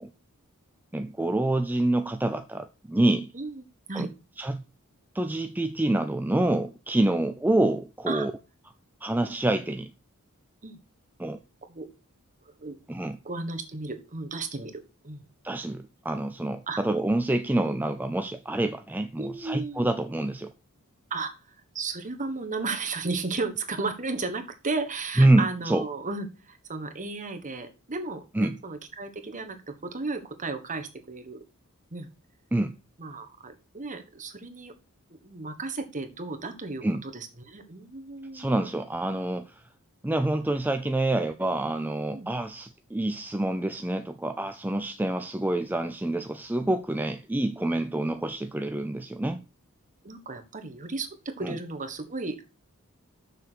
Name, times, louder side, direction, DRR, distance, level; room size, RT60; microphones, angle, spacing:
voice 1, 0.9-3.3 3.9-4.1 4.4-4.6 5.1-8.3 9.0-9.9 11.2-11.4 12.9-13.2 15.4-20.5 25.2-25.8 28.3-28.6 32.5-32.7 36.8-37.0 38.3-39.6 40.0-49.4 51.4-51.6, right 1 dB, 10° right, 0.4 m, -27 dB
voice 2, 12.4-12.8 13.2-15.3 16.7-16.8 19.2-19.9 21.1-31.4 31.9-32.1 33.0-34.7 35.1-38.7 42.1-42.3 50.0-52.5, right 3 dB, 35° right, 1.4 m, -34 dB
6.9 x 6.7 x 6.3 m
head